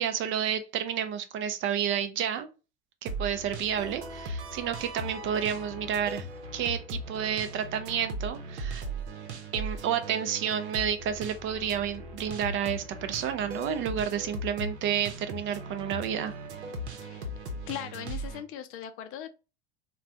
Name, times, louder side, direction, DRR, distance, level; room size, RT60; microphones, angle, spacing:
voice 1, 0.0-2.5 3.0-6.3 6.5-8.8 9.5-16.3, right 9 dB, 40° right, 0.4 m, -30 dB
sound 1, 3.1-18.4, right 2 dB, 90° right, 0.8 m, -38 dB
voice 2, 17.7-19.3, left 10 dB, 40° left, 0.5 m, -39 dB
3.2 x 2.2 x 2.5 m
hypercardioid pair, 100°, 33 cm